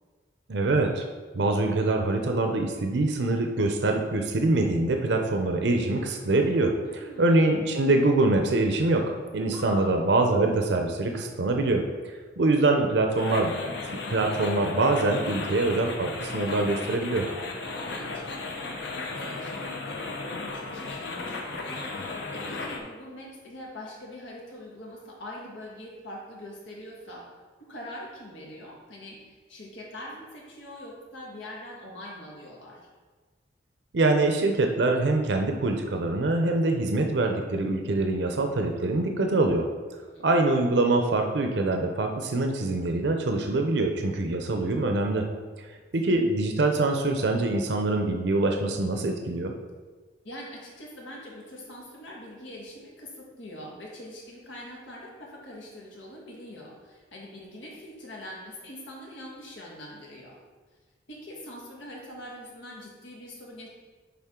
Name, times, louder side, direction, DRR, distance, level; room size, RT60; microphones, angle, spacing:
voice 1, 0.5-1.0 1.3-6.7 7.2-11.8 12.4-13.5 14.1-17.3 33.9-39.7 40.2-45.3 45.9-49.5, right 2 dB, 65° right, 3 dB, 0.6 m, -24 dB
voice 2, 6.9-7.6 9.5-10.0 17.6-27.3 27.6-32.8 40.1-40.3 50.2-60.4 61.1-63.7, left 1 dB, 90° left, -3 dB, 1.8 m, -43 dB
sound 1, 13.1-22.8, left 3 dB, 65° left, 0.8 m, -35 dB
10.0 x 3.6 x 3.7 m, 1.4 s
head